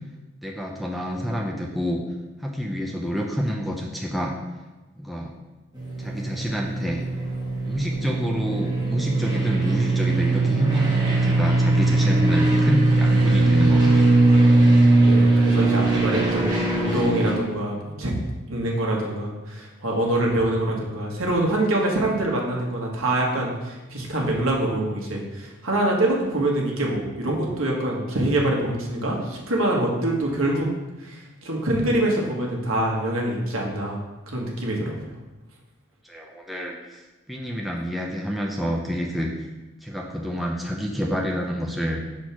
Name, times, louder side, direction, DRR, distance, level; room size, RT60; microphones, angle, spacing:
voice 1, 0.4-2.0 2.4-4.3 5.0-5.3 6.0-7.0 7.7-14.2 36.0-39.5 39.8-42.0, equal, ahead, -1 dB, 0.6 m, -28 dB
sound 1, 5.7-17.3, right 2 dB, 20° right, 1.4 m, -20 dB
voice 2, 14.9-18.1 18.5-30.7 31.0-34.0 34.3-35.0, right 1 dB, 65° right, -1 dB, 1.5 m, -25 dB
6.4 x 4.4 x 5.8 m, 1.1 s
head